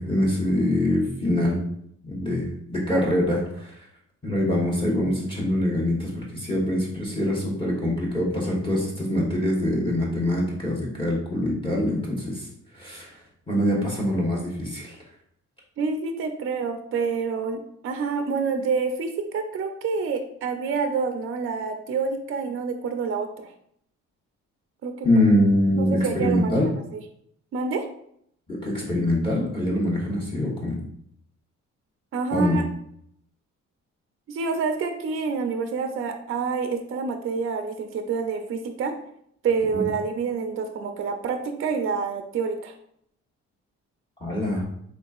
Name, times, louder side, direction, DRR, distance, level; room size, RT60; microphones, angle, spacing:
voice 1, 0.0-1.6 2.0-3.7 4.2-12.5 12.7-13.1 13.5-15.0 25.0-26.7 28.5-30.8 32.3-32.6 44.2-44.6, left 1 dB, 15° left, -4 dB, 1.0 m, -24 dB
voice 2, 15.8-23.5 24.8-25.1 25.8-26.6 26.9-27.0 27.5-27.8 32.1-32.6 34.3-38.9 39.4-42.7, right 5 dB, 45° right, 6 dB, 0.5 m, -27 dB
4.2 x 3.3 x 2.4 m, 0.70 s
cardioid pair, 90°, 30 cm